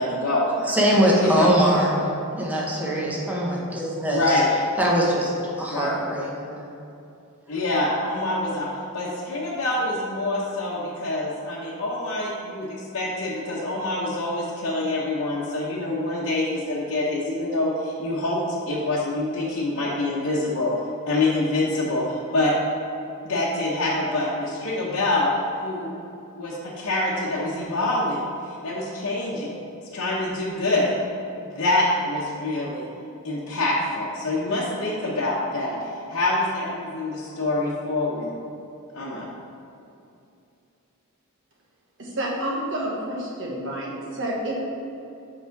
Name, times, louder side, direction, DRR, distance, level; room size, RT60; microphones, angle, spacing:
voice 1, 0.0-0.7 1.2-1.6 4.1-4.5 5.7-6.0 7.5-8.7 8.9-18.4 18.7-20.7 21.1-22.5 23.2-25.3 25.6-25.9 26.4-29.6 29.9-30.9 31.5-32.9 33.2-35.8 36.1-38.3 38.9-39.3, left 2 dB, 60° left, -7 dB, 1.0 m, -25 dB
voice 2, 0.7-2.0 2.4-4.2 4.8-6.6, equal, 5° right, -4 dB, 1.0 m, -22 dB
voice 3, 42.0-44.5, right 1 dB, 55° right, -3 dB, 1.4 m, -29 dB
6.0 x 4.9 x 5.8 m, 2.7 s
head